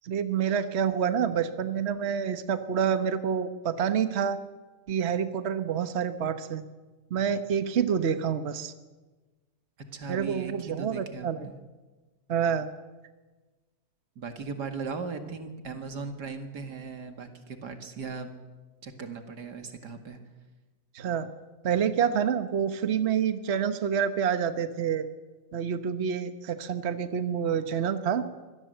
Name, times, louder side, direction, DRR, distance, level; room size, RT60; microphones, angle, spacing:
voice 1, 0.0-4.4 4.9-6.6 7.1-8.7 10.1-11.4 12.3-12.7 20.9-21.3 21.6-25.1 25.5-28.3, right 7 dB, 45° right, 10 dB, 1.3 m, -27 dB
voice 2, 9.9-11.6 14.2-18.3 18.8-20.2, right 4 dB, 85° right, 6 dB, 2.7 m, -38 dB
24.5 x 17.5 x 7.9 m, 1.2 s
omnidirectional pair, 1.7 m